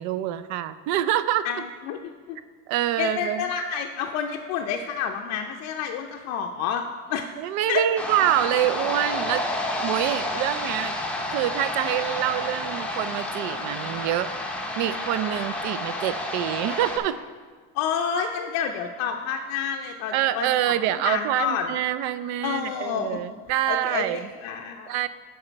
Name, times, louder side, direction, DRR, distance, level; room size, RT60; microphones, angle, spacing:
voice 1, 0.0-1.7 2.7-3.5 7.4-9.4 9.8-10.9 11.3-14.3 14.8-17.1 20.1-24.3 24.9-25.1, right 12 dB, 65° right, 14 dB, 0.4 m, -26 dB
voice 2, 1.4-2.0 2.3-2.4 3.0-6.8 7.1-7.3 7.7-7.8 17.7-20.5 21.0-21.6 22.4-23.2 23.7-25.0, left 7 dB, 60° left, 2 dB, 0.5 m, -29 dB
sound 1, 8.0-17.0, left 1 dB, 5° left, 0.6 m, -30 dB
7.8 x 5.4 x 4.5 m, 1.5 s
cardioid pair, 145°, 31 cm